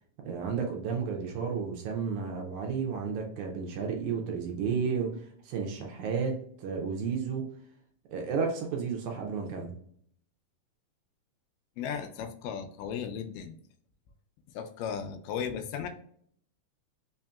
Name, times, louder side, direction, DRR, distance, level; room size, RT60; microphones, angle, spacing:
voice 1, 0.2-5.1 5.5-6.3 6.6-7.4 8.1-9.7, right 6 dB, 75° right, 1 dB, 2.0 m, -32 dB
voice 2, 11.8-13.6 14.5-15.9, left 7 dB, 85° left, 6 dB, 2.2 m, -36 dB
5.5 x 2.7 x 2.3 m, 0.62 s
omnidirectional pair, 3.8 m